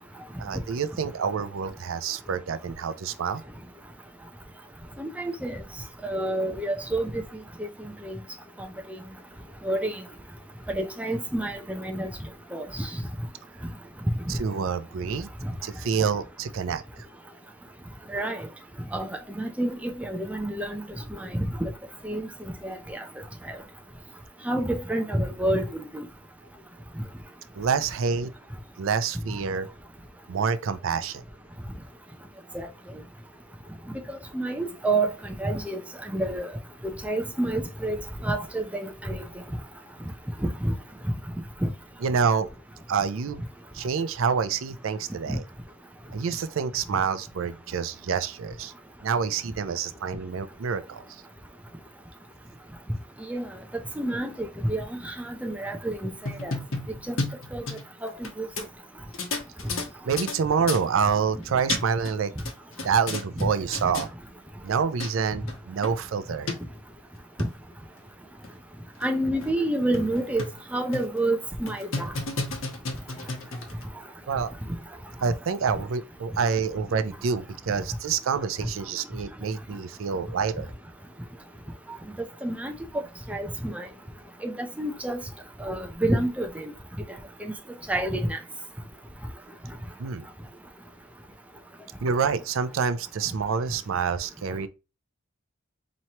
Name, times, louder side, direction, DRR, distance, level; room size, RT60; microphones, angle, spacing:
voice 1, 0.4-3.4 14.3-15.3 15.6-16.8 27.5-28.3 28.8-29.7 30.3-31.2 42.0-42.5 42.9-43.4 43.7-45.4 46.1-48.7 49.0-51.2 60.0-62.3 62.8-64.1 64.6-66.5 74.3-74.5 75.2-80.7 90.0-90.2 92.0-94.7, right 6 dB, 75° right, 0.4 m, -27 dB
voice 2, 5.0-5.6 6.0-7.1 8.0-8.2 9.6-9.9 10.7-12.1 12.5-12.9 14.3-14.4 18.1-18.4 18.9-19.1 19.4-20.8 21.2-21.3 21.6-21.7 22.0-22.3 22.6-23.0 24.5-25.6 25.9-26.0 32.5-32.7 34.1-35.1 35.4-35.8 36.1-36.5 36.8-38.0 38.2-39.2 40.4-40.7 41.6-41.7 45.3-45.4 53.3-53.5 54.0-56.1 56.4-56.5 57.1-57.2 57.5-57.6 58.0-58.1 58.4-58.5 63.4-63.5 69.0-70.4 70.7-72.1 82.4-83.9 84.4-85.2 85.6-86.6 87.4-87.5 87.9-88.4, right 1 dB, 5° right, 0.5 m, -28 dB
sound 1, 56.2-58.3 58.6-58.7 59.1-60.4 60.7-60.8 61.4-62.1 62.4-63.4 63.7-64.1 64.7-64.8 65.0-65.1 65.5-65.6 65.8-65.9 66.5-66.6 67.2-67.5 68.0-68.1 68.4-68.5 69.0-69.1 69.4-69.5 69.9-70.6 70.9-71.2 71.7-73.8, left 3 dB, 75° left, 1.1 m, -32 dB
4.3 x 3.0 x 2.8 m
head